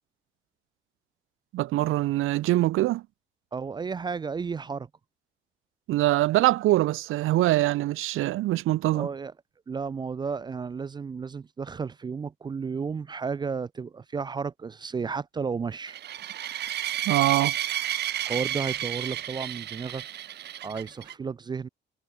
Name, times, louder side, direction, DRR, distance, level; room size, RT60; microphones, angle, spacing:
voice 1, 1.5-3.0 5.9-9.1 17.1-17.5, right 16 dB, 90° right, 0.5 m, -23 dB
voice 2, 3.5-4.9 8.9-9.3 9.7-16.0 18.2-20.0 20.6-21.7, right 5 dB, 20° right, 0.4 m, -33 dB
sound 1, 15.9-21.1, right 11 dB, 55° right, 0.9 m, -32 dB
cardioid pair, 170°, 21 cm